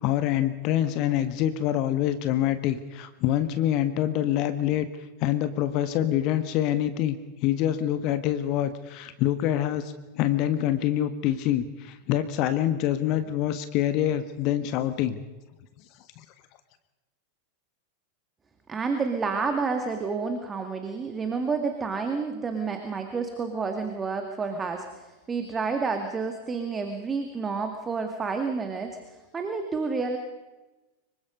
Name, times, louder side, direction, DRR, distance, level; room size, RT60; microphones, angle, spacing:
voice 1, 0.0-4.9 5.2-15.2, left 12 dB, 40° left, 11 dB, 1.2 m, -26 dB
voice 2, 18.7-30.2, right 4 dB, 20° right, 6 dB, 2.1 m, -30 dB
25.5 x 23.5 x 5.3 m, 1.1 s
figure-of-eight pair, 90°, 0 cm